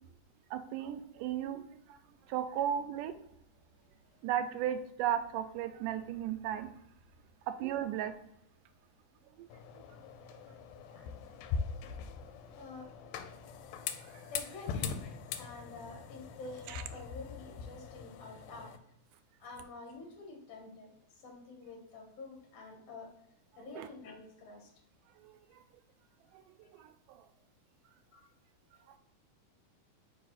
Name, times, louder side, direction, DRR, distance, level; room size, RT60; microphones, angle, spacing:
voice 1, 0.5-1.6 2.3-3.1 4.2-6.7 7.6-8.1 23.8-23.9 25.2-25.3 26.8-26.9, right 10 dB, 85° right, 9 dB, 2.1 m, -34 dB
sound 1, 9.5-18.8, left 6 dB, 85° left, 2.2 m, -42 dB
voice 2, 12.6-12.9 14.3-18.7 19.4-20.9 21.2-23.1 23.6-24.7 26.6-26.8 28.1-28.2, left 3 dB, 55° left, 1 dB, 2.3 m, -48 dB
5.0 x 4.6 x 4.1 m, 0.75 s
omnidirectional pair, 3.7 m